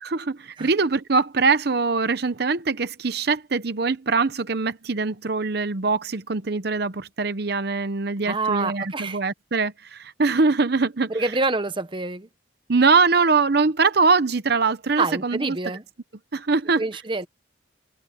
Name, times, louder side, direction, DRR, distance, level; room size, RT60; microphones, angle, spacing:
voice 1, 0.0-11.3 12.7-15.6 16.3-16.8, right 4 dB, 55° right, 0.8 m, -22 dB
voice 2, 8.3-9.2 11.1-12.3 15.0-15.8 16.8-17.3, right 3 dB, 25° right, 0.9 m, -26 dB
head